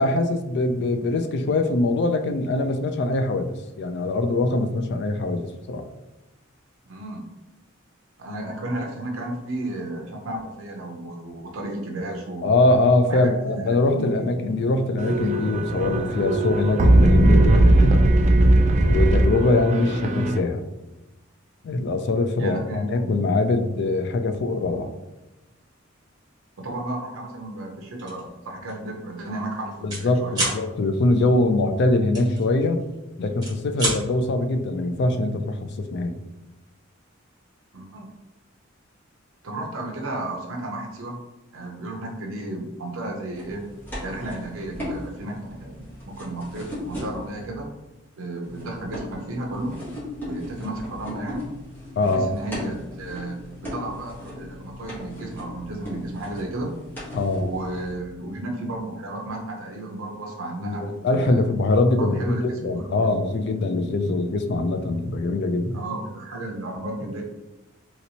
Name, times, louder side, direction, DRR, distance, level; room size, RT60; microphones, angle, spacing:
voice 1, 0.0-5.9 12.4-18.1 18.8-20.6 21.6-24.9 29.8-32.8 33.2-36.2 52.0-52.3 57.1-57.5 60.6-65.8, left 2 dB, 55° left, 7 dB, 0.4 m, -23 dB
voice 2, 6.8-7.2 8.2-12.5 13.1-14.3 22.4-23.1 24.7-24.8 26.6-30.5 37.7-38.1 39.4-41.2 41.5-43.6 44.0-47.7 48.2-49.8 50.2-51.5 52.0-53.4 53.6-56.7 57.4-61.4 62.0-63.1 65.7-67.2, right 1 dB, 85° right, 0 dB, 0.6 m, -33 dB
sound 1, 15.0-20.4, right 1 dB, 35° right, 0.3 m, -18 dB
sound 2, 28.0-28.2 28.7-28.9 29.1-30.0 30.3-30.6 32.1-32.9 33.3-34.0, right 1 dB, 20° right, 1.4 m, -28 dB
sound 3, 43.3-47.4 48.4-57.9, left 1 dB, 10° left, 1.1 m, -37 dB
3.0 x 2.9 x 2.7 m, 1.0 s
head